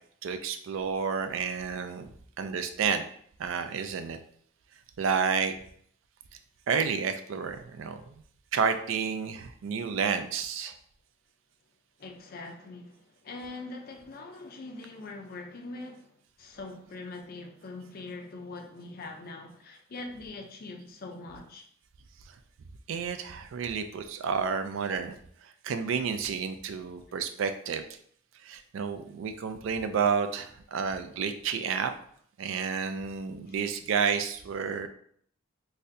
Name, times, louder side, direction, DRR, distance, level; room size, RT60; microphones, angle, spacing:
voice 1, 0.2-2.1 2.4-3.1 3.4-4.2 5.0-5.5 6.7-8.2 8.5-10.7 22.9-27.8 28.4-31.9 32.4-34.9, right 6 dB, 60° right, 0.3 m, -30 dB
voice 2, 12.0-21.6 32.4-32.7 33.5-33.6, left 2 dB, 45° left, 0.5 m, -43 dB
4.0 x 2.6 x 2.6 m
head